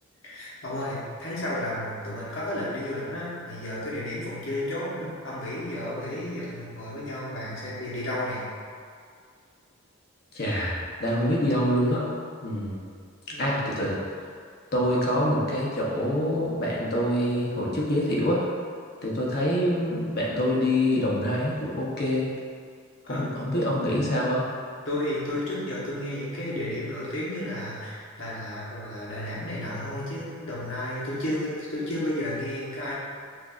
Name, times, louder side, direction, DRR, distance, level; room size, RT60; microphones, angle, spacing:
voice 1, 0.2-8.4 13.3-13.8 23.1-23.5 24.8-32.9, left 1 dB, 70° left, -7 dB, 1.1 m, -32 dB
voice 2, 10.3-12.1 12.4-12.8 13.4-13.9 14.7-18.5 19.0-22.3 23.1-24.4, left 1 dB, 50° left, -5 dB, 0.8 m, -25 dB
6.2 x 2.6 x 2.4 m, 2.2 s
head